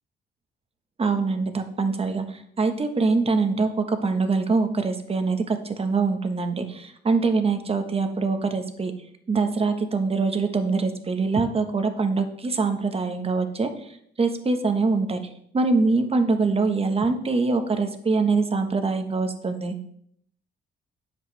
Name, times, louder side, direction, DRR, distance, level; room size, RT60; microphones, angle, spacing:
voice 1, 1.0-8.9 9.3-13.7 14.2-15.2 15.5-19.7, right 4 dB, 30° right, 7 dB, 1.2 m, -24 dB
9.8 x 7.5 x 3.3 m, 0.68 s
cardioid pair, 90°, 20 cm